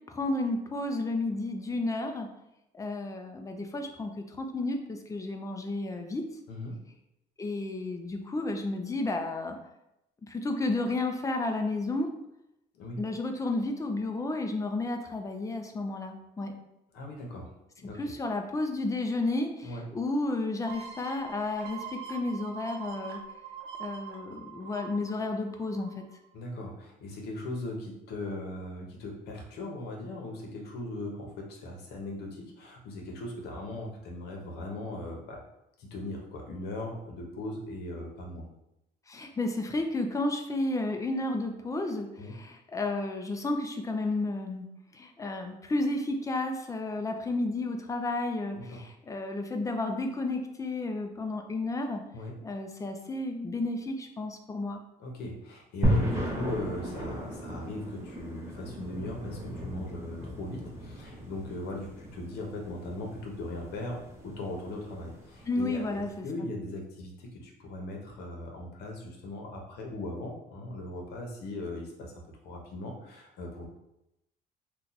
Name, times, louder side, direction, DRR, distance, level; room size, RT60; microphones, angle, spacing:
voice 1, 0.1-2.3 2.7-6.2 7.4-9.6 10.2-12.1 13.0-16.5 18.0-23.2 23.8-26.0 39.1-44.7 44.9-52.0 52.4-54.8 65.5-66.3, left 2 dB, 20° left, 4 dB, 0.4 m, -32 dB
voice 2, 16.9-17.5 17.8-18.0 19.6-19.9 26.3-35.4 35.8-38.5 42.2-42.3 48.5-48.9 52.1-52.4 55.0-73.7, left 1 dB, 75° left, 1 dB, 0.8 m, -39 dB
sound 1, 20.7-26.2 26.6-26.7, right 6 dB, 75° right, 0.6 m, -43 dB
sound 2, 55.8-66.1, equal, 15° right, 0.8 m, -35 dB
2.8 x 2.3 x 3.9 m, 0.86 s
cardioid pair, 110°, 17 cm